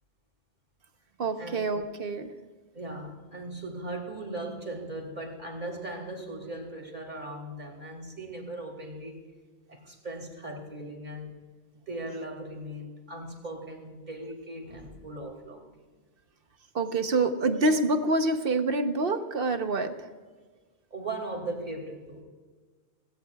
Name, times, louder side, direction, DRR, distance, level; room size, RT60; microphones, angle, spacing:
voice 1, 1.2-2.3 16.7-20.1, right 2 dB, 60° right, 8 dB, 1.1 m, -26 dB
voice 2, 2.7-9.3 9.7-11.3 11.9-15.7 20.9-22.2, right 1 dB, 40° right, 2 dB, 2.5 m, -38 dB
18.0 x 17.0 x 2.3 m, 1.4 s
omnidirectional pair, 1.1 m